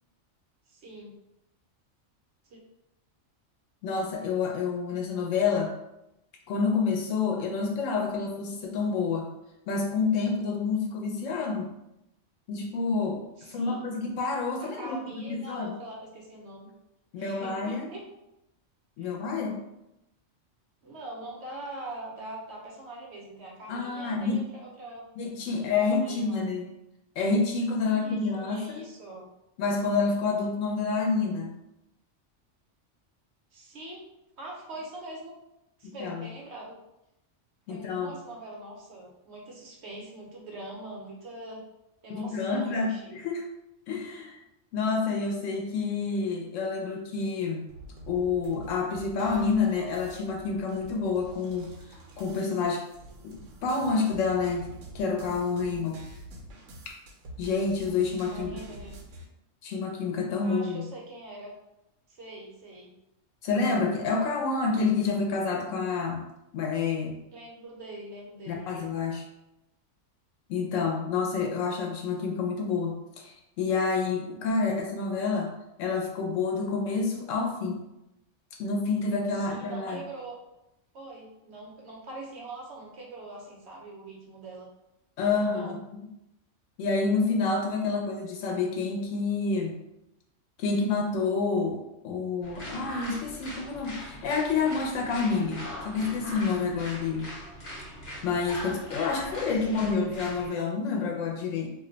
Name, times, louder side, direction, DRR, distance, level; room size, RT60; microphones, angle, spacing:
voice 1, 0.7-1.1 2.4-2.6 13.4-13.8 14.6-16.7 17.2-18.0 19.0-19.1 20.8-25.0 25.5-25.6 25.9-26.4 27.9-29.3 33.5-34.0 34.4-35.3 35.8-36.7 37.7-41.6 42.0-43.2 58.3-59.0 60.4-61.5 62.1-62.9 67.3-68.7 79.3-80.3 80.9-84.7 85.2-85.8 99.1-99.2 99.5-100.0, right 2 dB, 65° right, -2 dB, 0.9 m, -43 dB
voice 2, 3.8-5.7 6.5-9.3 9.7-11.7 12.5-13.2 13.5-15.0 15.3-15.7 17.1-17.9 19.0-19.6 23.7-24.4 25.2-26.7 27.2-28.8 29.6-31.5 35.8-36.3 37.7-38.2 42.1-43.5 43.9-44.4 44.7-47.7 48.1-51.7 52.2-52.8 53.2-54.7 54.9-56.0 57.4-58.6 59.6-60.9 63.4-66.2 66.5-67.2 68.5-69.2 70.5-75.5 75.8-77.8 78.6-80.1 85.2-85.8 86.8-89.7 90.6-97.3 98.2-101.7, left 4 dB, 90° left, 1 dB, 1.0 m, -28 dB
sound 1, 47.7-59.2, right 1 dB, 90° right, 1.0 m, -47 dB
sound 2, 92.4-100.5, left 1 dB, 55° left, 1.2 m, -40 dB
2.6 x 2.2 x 3.8 m, 0.88 s
omnidirectional pair, 1.3 m